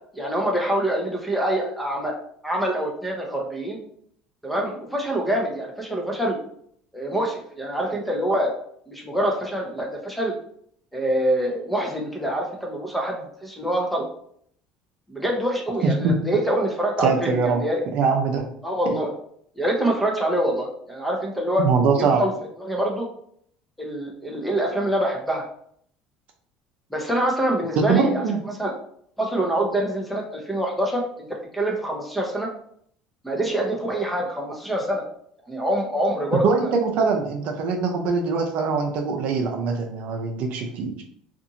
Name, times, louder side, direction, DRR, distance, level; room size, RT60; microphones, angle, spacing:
voice 1, 0.1-2.1 2.4-3.8 4.4-6.4 6.9-8.5 8.9-10.3 10.9-14.0 15.1-17.8 18.6-19.1 19.6-21.6 22.0-22.3 22.6-23.1 23.8-25.4 26.9-28.3 28.6-28.7 29.2-31.3 31.5-32.5 33.2-35.0 35.5-36.7, right 1 dB, ahead, 0 dB, 0.7 m, -25 dB
voice 2, 15.8-16.1 17.0-17.6 17.9-18.4 21.6-22.2 27.8-28.4 36.4-41.0, right 5 dB, 60° right, 3 dB, 0.6 m, -22 dB
2.6 x 2.5 x 2.7 m, 0.64 s
supercardioid pair, 110°, 2 cm